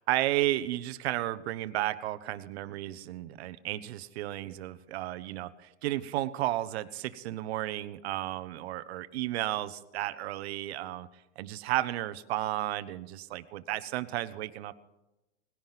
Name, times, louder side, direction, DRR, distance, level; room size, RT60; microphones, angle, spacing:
voice 1, 0.0-11.1 11.4-14.7, right 15 dB, 55° right, 13 dB, 1.0 m, -33 dB
18.5 x 10.5 x 5.8 m, 0.98 s
supercardioid pair, 160°, 38 cm